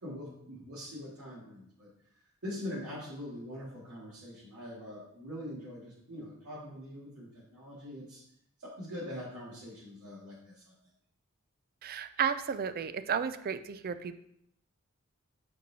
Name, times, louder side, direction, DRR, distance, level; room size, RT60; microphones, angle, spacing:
voice 1, 0.0-1.9 2.4-8.2 8.6-10.7, left 1 dB, 85° right, -10 dB, 1.9 m, -43 dB
voice 2, 11.8-14.2, right 7 dB, 45° right, 12 dB, 0.4 m, -33 dB
8.4 x 4.6 x 2.7 m, 0.74 s
head